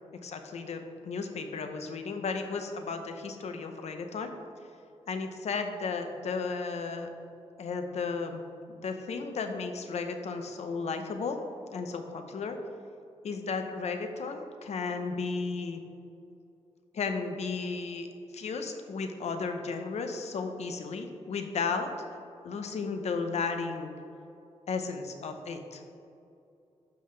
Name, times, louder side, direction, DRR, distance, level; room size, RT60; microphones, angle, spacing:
voice 1, 0.2-4.3 5.1-7.1 7.6-8.4 8.7-11.4 11.7-12.6 13.2-15.8 16.9-18.1 18.3-21.9 22.4-23.9 24.7-25.8, left 4 dB, 70° left, 6 dB, 0.8 m, -34 dB
11.5 x 5.7 x 3.3 m, 2.7 s
wide cardioid pair, 130°, 12 cm